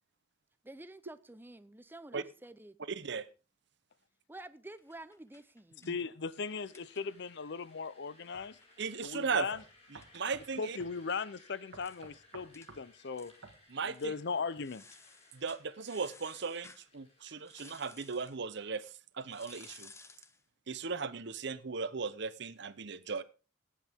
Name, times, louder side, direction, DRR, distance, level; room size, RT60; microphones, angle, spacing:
voice 1, 0.6-2.8 4.3-5.8, right 2 dB, 10° right, 0.7 m, -50 dB
voice 2, 2.9-3.3 8.8-9.5 9.9-10.8 13.7-14.1 15.3-19.9 20.7-23.2, right 5 dB, 60° right, 0.8 m, -37 dB
sound 1, 4.8-7.4 7.7-7.8 8.1-11.2 11.5-11.6 11.8-12.0 12.5-12.7 13.1-13.6 13.9-14.1 14.6-16.9 17.4-18.4 19.3-20.4, left 4 dB, 15° left, 0.9 m, -57 dB
voice 3, 5.9-8.6 9.0-9.6 10.6-13.3 13.8-14.8, left 5 dB, 60° left, 0.6 m, -38 dB
sound 2, 6.4-17.6, left 2 dB, 35° left, 5.1 m, -63 dB
sound 3, 8.3-8.5 9.0-9.1 9.5-10.5 10.8-11.0 11.7-12.9 13.4-13.6, right 3 dB, 80° right, 1.8 m, -51 dB
18.5 x 8.5 x 3.6 m
head